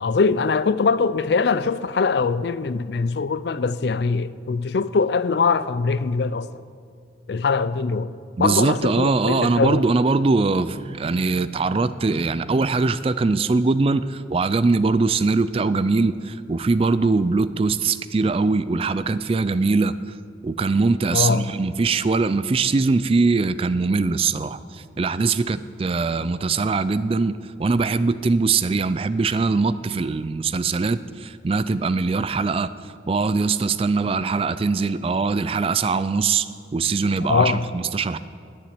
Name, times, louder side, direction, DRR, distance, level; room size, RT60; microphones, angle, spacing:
voice 1, 0.0-6.5 7.3-8.1 8.4-9.8 21.1-21.5 37.3-37.7, left 4 dB, 60° left, 0.4 m, -22 dB
voice 2, 8.4-20.0 20.4-32.7 33.1-36.5 36.7-38.2, right 4 dB, 30° right, 0.3 m, -22 dB
10.5 x 9.9 x 9.6 m
head